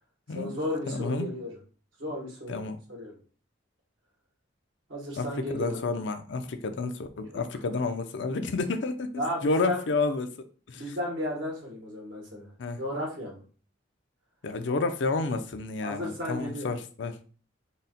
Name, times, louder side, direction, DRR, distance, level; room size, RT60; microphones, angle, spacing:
voice 1, 0.3-1.6 2.0-2.6 2.9-3.2 4.9-5.8 7.3-7.4 9.2-9.8 10.7-12.5 12.8-13.4 15.8-16.7, left 1 dB, 80° right, 1.9 m, -34 dB
voice 2, 0.9-1.3 2.5-2.8 5.2-5.3 5.5-10.3 10.7-10.8 12.6-12.8 14.4-17.2, left 3 dB, 70° left, 0.5 m, -30 dB
4.0 x 2.1 x 4.0 m
head